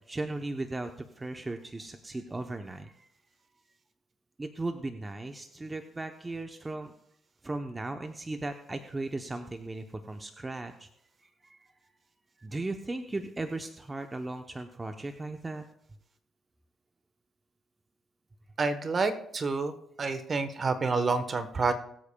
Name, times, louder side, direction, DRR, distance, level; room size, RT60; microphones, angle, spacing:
voice 1, 0.1-3.1 4.4-6.9 7.4-10.9 11.2-11.6 12.4-15.6, right 2 dB, 20° right, 6 dB, 0.8 m, -37 dB
voice 2, 18.6-19.7 20.0-21.7, right 4 dB, 40° right, 10 dB, 1.1 m, -28 dB
21.5 x 8.5 x 2.3 m, 0.72 s
cardioid pair, 90°, 0 cm